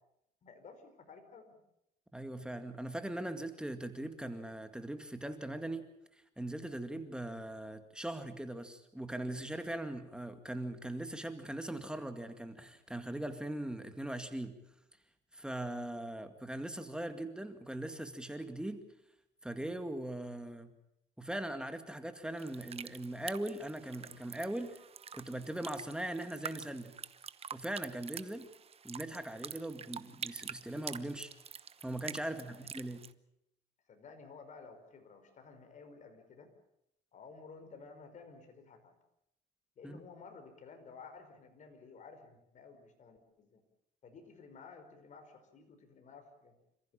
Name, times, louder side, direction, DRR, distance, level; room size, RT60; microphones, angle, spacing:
voice 1, 0.4-1.6 32.2-32.7 33.9-36.5 37.1-38.9 39.8-43.6 44.0-46.5, left 4 dB, 45° left, 7 dB, 5.1 m, -54 dB
voice 2, 2.1-5.9 6.4-14.6 15.3-18.8 19.4-20.7 21.2-24.8 25.1-27.0 27.5-28.5 28.8-31.3 31.8-33.0 39.8-40.0, right 1 dB, 5° right, 8 dB, 2.1 m, -40 dB
sound 1, 22.4-33.1, right 7 dB, 35° right, 1.0 m, -47 dB
28.0 x 15.0 x 8.8 m, 0.80 s
cardioid pair, 110°, 17 cm